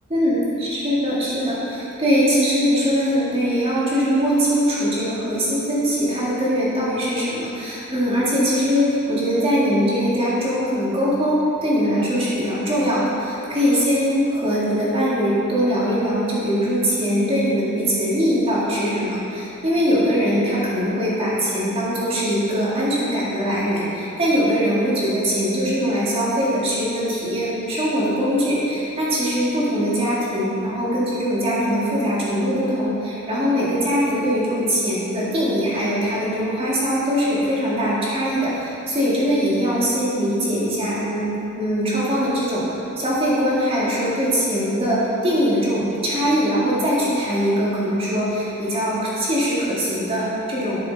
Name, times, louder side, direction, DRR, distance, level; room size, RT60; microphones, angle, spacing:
voice 1, 0.1-42.6 43.0-50.8, equal, 25° right, -7 dB, 2.0 m, -21 dB
11.0 x 6.7 x 4.0 m, 2.9 s
head